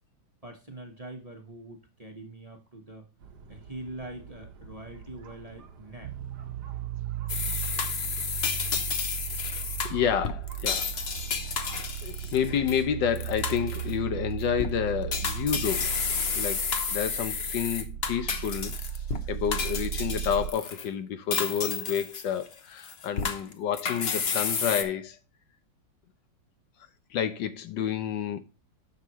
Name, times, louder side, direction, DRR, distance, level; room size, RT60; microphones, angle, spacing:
voice 1, 0.4-3.1 3.5-6.1, right 2 dB, 25° right, 1.0 m, -43 dB
sound 1, 3.2-14.4, right 5 dB, 65° right, 1.4 m, -49 dB
sound 2, 6.0-20.5, right 11 dB, 90° right, 1.3 m, -36 dB
sound 3, 7.3-12.8 13.1-13.9 14.4-14.7 15.1-19.2 19.5-20.9 21.3-22.5 22.8-24.8, left 6 dB, 50° left, 0.8 m, -31 dB
voice 2, 9.8-10.9 12.0-15.9 16.3-16.6 16.9-18.7 19.3-25.2 27.1-28.4, left 8 dB, 75° left, 1.5 m, -29 dB
10.0 x 6.3 x 3.1 m
omnidirectional pair, 2.0 m